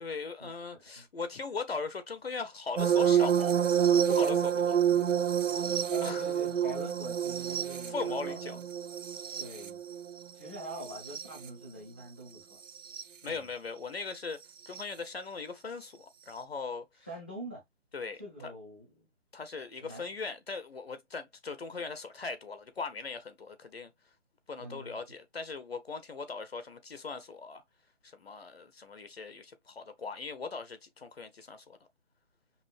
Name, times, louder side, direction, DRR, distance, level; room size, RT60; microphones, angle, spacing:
voice 1, 0.0-3.6 4.1-4.8 6.0-6.2 7.7-8.6 13.2-16.9 17.9-18.5 19.3-23.9 24.5-27.6 28.0-31.8, left 4 dB, 55° left, 0.7 m, -39 dB
sound 1, 2.8-11.5 12.8-13.0 14.7-14.8, right 9 dB, 85° right, 0.7 m, -28 dB
voice 2, 5.9-8.6 9.4-9.8 10.3-12.6 13.2-13.5 17.0-17.6 18.2-19.1 19.8-20.1 24.6-25.0, right 1 dB, 10° right, 0.7 m, -44 dB
5.5 x 2.5 x 2.4 m
hypercardioid pair, 170°, 37 cm